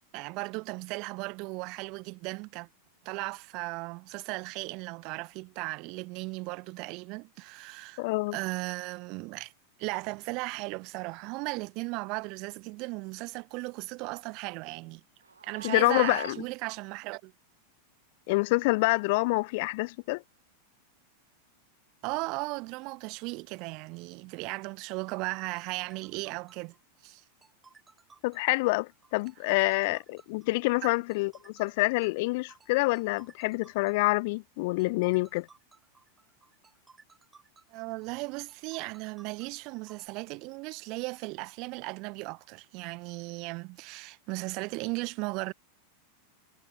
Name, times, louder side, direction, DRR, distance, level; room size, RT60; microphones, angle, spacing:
voice 1, 0.1-2.7 3.0-8.1 8.3-9.5 9.8-15.0 15.4-17.3 22.0-26.7 27.0-27.2 29.4-29.7 37.7-45.5, right 27 dB, 40° right, 1.1 m, -36 dB
voice 2, 8.0-8.4 15.6-16.4 18.3-20.2 28.2-35.5, left 24 dB, 50° left, 0.4 m, -27 dB
Meow, 15.3-16.4, right 5 dB, 75° right, 1.2 m, -39 dB
sound 1, 25.6-40.1, right 4 dB, 15° right, 4.0 m, -59 dB
figure-of-eight pair, 90°, 0 cm